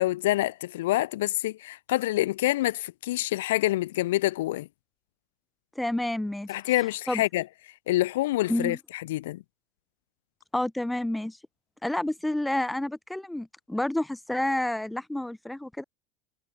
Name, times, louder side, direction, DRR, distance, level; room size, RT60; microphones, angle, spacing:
voice 1, 0.0-4.7 6.5-7.5 7.9-9.4, left 16 dB, 80° left, 2.4 m, -27 dB
voice 2, 5.8-6.5 7.1-7.2 8.5-8.8 10.5-11.4 11.8-15.8, left 1 dB, 5° left, 4.5 m, -29 dB
hypercardioid pair, 90°, 0 cm